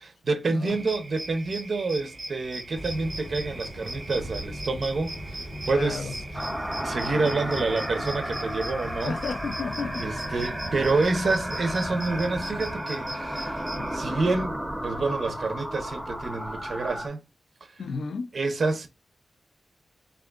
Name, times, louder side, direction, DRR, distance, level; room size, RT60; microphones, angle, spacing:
voice 1, 0.2-5.1 5.7-6.5 6.8-9.2 10.0-13.6 13.9-17.2 18.3-18.9, right 3 dB, 55° right, 0.6 m, -28 dB
sound 1, 0.7-14.0, right 2 dB, 35° right, 0.9 m, -40 dB
sound 2, 2.7-12.7, right 1 dB, 15° left, 1.2 m, -39 dB
voice 2, 5.7-6.1 9.0-10.1 13.7-13.9 17.8-18.3, left 5 dB, 80° left, 0.3 m, -33 dB
sound 3, 6.3-17.1, equal, ahead, 0.6 m, -33 dB
3.5 x 2.4 x 2.3 m
wide cardioid pair, 115°, 0 cm